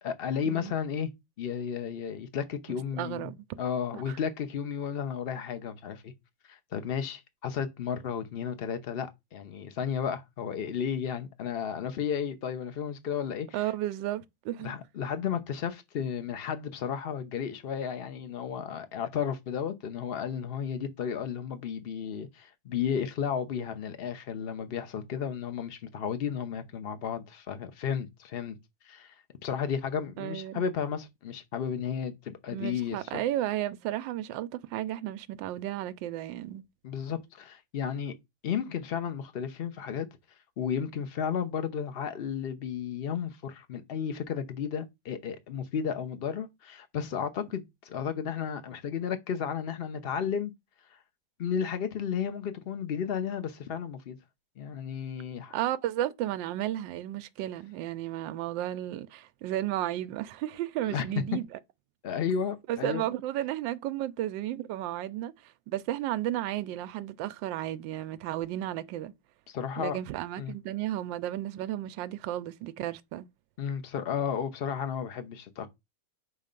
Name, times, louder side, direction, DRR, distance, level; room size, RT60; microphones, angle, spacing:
voice 1, 0.0-1.1 1.4-3.3 3.6-6.1 6.5-13.5 14.6-28.6 28.8-29.1 29.4-33.2 36.8-38.1 38.4-40.1 40.6-50.5 51.4-54.2 54.6-55.6 60.8-61.2 62.0-63.1 69.5-70.0 70.4-70.5 73.6-75.7, left 7 dB, 55° left, 0.6 m, -33 dB
voice 2, 2.7-3.4 3.9-4.2 13.5-14.7 30.2-30.6 32.5-36.6 55.5-61.6 62.7-69.1 69.8-73.3, right 13 dB, 75° right, 1.2 m, -33 dB
6.2 x 3.2 x 5.2 m
omnidirectional pair, 2.1 m